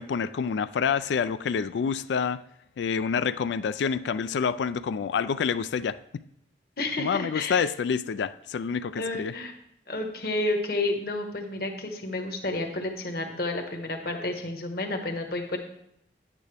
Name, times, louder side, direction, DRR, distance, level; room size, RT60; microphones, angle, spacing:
voice 1, 0.0-2.4 2.8-6.0 7.0-9.3, left 6 dB, 80° left, 14 dB, 0.3 m, -27 dB
voice 2, 6.8-7.6 9.0-9.5 9.9-15.6, left 2 dB, 55° left, 4 dB, 1.3 m, -30 dB
9.5 x 8.9 x 3.4 m, 0.76 s
head